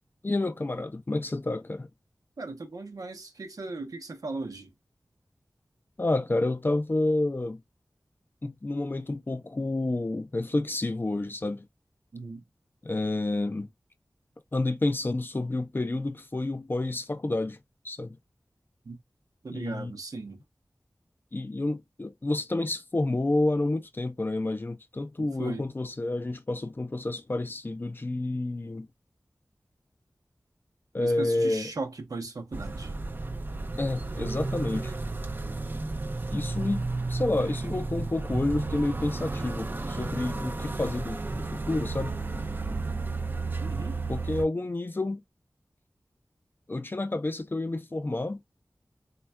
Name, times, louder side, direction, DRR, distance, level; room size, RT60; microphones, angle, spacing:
voice 1, 0.2-1.9 6.0-7.6 8.4-11.7 12.8-13.7 14.5-17.6 17.8-18.2 19.5-19.9 21.3-28.9 30.9-31.7 33.8-34.9 36.3-42.2 44.1-45.2 46.7-48.4, left 2 dB, 35° left, 0.4 m, -29 dB
voice 2, 2.4-4.7 12.1-12.5 18.8-19.0 19.4-20.4 25.2-25.7 31.0-33.0 43.6-44.0, right 3 dB, 70° right, 0.7 m, -37 dB
sound 1, 32.5-44.4, right 3 dB, 30° right, 0.3 m, -32 dB
3.2 x 2.2 x 2.2 m
cardioid pair, 40°, 6 cm